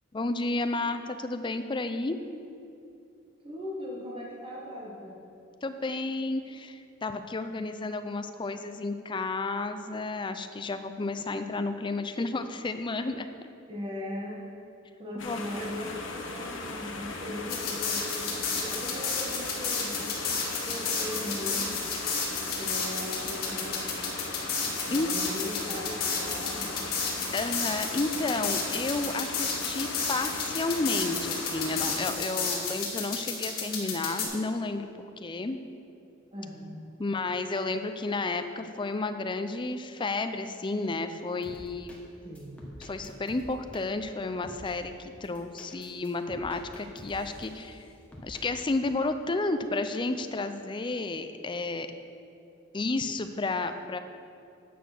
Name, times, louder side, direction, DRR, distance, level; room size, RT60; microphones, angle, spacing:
voice 1, 0.1-2.2 5.6-13.3 15.2-15.4 24.9-25.1 27.3-35.6 37.0-41.9 42.8-47.8 48.2-51.9 52.7-54.0, left 3 dB, 25° left, 9 dB, 0.4 m, -32 dB
voice 2, 3.4-5.1 11.5-11.6 13.7-14.4 15.0-18.3 18.6-21.8 22.6-24.3 24.9-26.9 36.3-36.8 42.2-42.6, left 1 dB, 25° right, -4 dB, 1.3 m, -39 dB
sound 1, 15.2-32.1, left 3 dB, 70° left, 1.2 m, -38 dB
sound 2, 17.5-34.3, left 5 dB, 50° left, 1.9 m, -32 dB
sound 3, 41.4-42.0 42.4-43.8 44.4-44.8 45.2-47.8 48.1-48.5, equal, 5° left, 1.3 m, -47 dB
9.1 x 6.6 x 6.0 m, 2.7 s
head